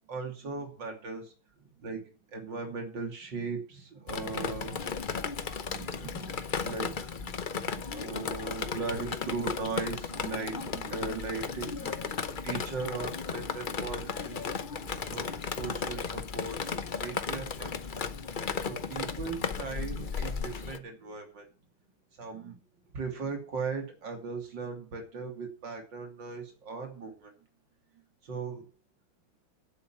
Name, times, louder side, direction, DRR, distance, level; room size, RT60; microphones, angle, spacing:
voice 1, 0.1-14.5 14.9-16.6 16.9-18.1 18.6-21.5 22.2-22.6 22.9-27.3 27.9-28.6, right 4 dB, 60° right, 3 dB, 3.5 m, -38 dB
Drip, 4.1-20.8, left 5 dB, 75° left, 0.4 m, -35 dB
9.7 x 8.3 x 7.5 m, 0.38 s
omnidirectional pair, 2.2 m